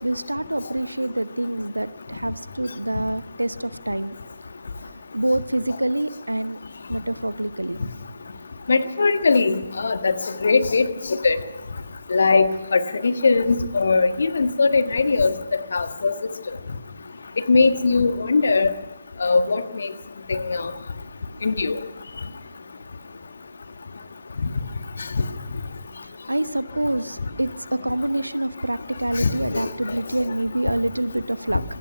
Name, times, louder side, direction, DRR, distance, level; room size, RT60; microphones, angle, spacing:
voice 1, 0.0-4.2 5.1-6.6 6.9-7.8 26.3-31.6, right 1 dB, 80° right, 15 dB, 0.9 m, -26 dB
voice 2, 8.7-10.1 10.4-10.9 11.2-11.4 12.1-15.3 15.7-16.1 17.5-18.7 19.2-19.9 20.3-20.7 21.4-21.8 29.2-29.7, left 4 dB, 55° left, 10 dB, 1.5 m, -20 dB
26.5 x 18.0 x 5.8 m, 1.1 s
figure-of-eight pair, 140°, 0 cm